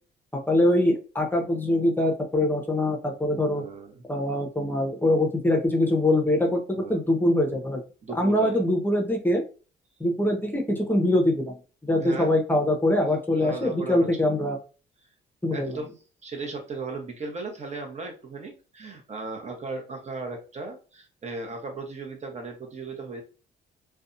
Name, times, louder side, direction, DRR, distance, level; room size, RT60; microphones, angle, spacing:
voice 1, 0.5-3.6 4.1-7.8 8.1-9.4 10.0-11.6 11.8-14.6 15.4-15.8, left 1 dB, 10° left, 1 dB, 0.7 m, -23 dB
voice 2, 3.6-4.0 6.8-7.0 8.0-8.6 11.9-12.4 13.4-14.1 15.5-23.2, right 3 dB, 35° right, 3 dB, 0.9 m, -36 dB
2.6 x 2.2 x 2.5 m, 0.34 s
cardioid pair, 90°, 20 cm